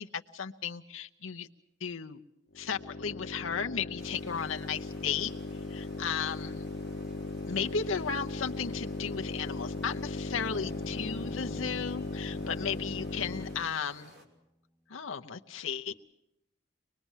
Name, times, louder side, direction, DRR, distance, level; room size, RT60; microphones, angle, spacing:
voice 1, 0.0-1.5 1.8-2.2 2.5-5.3 5.7-6.6 7.5-14.1 14.9-15.9, left 6 dB, 85° left, 5 dB, 0.8 m, -35 dB
sound 1, 2.5-13.8, left 3 dB, 60° left, 1.2 m, -38 dB
sound 2, 4.0-14.2, right 1 dB, 55° right, 2.9 m, -55 dB
sound 3, 10.2-14.5, equal, 10° right, 1.0 m, -52 dB
23.5 x 21.5 x 7.3 m, 0.84 s
head